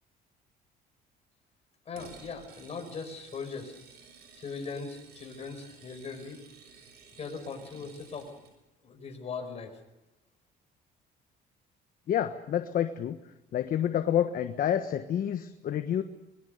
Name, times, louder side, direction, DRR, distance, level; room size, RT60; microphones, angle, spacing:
voice 1, 1.9-3.7 4.3-6.4 7.2-8.3 8.8-9.7, left 4 dB, 40° left, 4 dB, 6.0 m, -39 dB
sound 1, 1.9-8.6, right 5 dB, 75° right, 6.5 m, -54 dB
voice 2, 12.1-13.2 13.5-16.0, left 10 dB, 55° left, 8 dB, 1.3 m, -28 dB
24.0 x 21.0 x 6.8 m, 0.96 s
cardioid pair, 110°, 17 cm